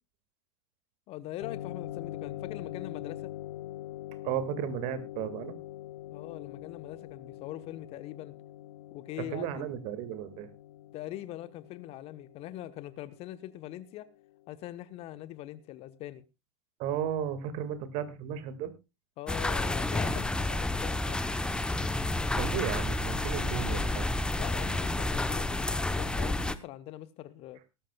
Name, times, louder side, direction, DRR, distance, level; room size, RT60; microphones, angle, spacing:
voice 1, 1.1-3.3 6.1-8.3 8.9-9.7 10.9-14.1 14.5-16.2 19.2-21.3 24.3-27.6, left 14 dB, 40° left, 1.0 m, -42 dB
sound 1, 1.4-14.5, left 14 dB, 60° left, 0.6 m, -44 dB
voice 2, 4.2-5.5 9.3-10.5 16.8-18.7 22.4-24.0, right 10 dB, 45° right, 2.0 m, -34 dB
sound 2, 19.3-26.5, left 2 dB, 5° left, 0.8 m, -30 dB
18.5 x 13.5 x 2.3 m
figure-of-eight pair, 95°, 16 cm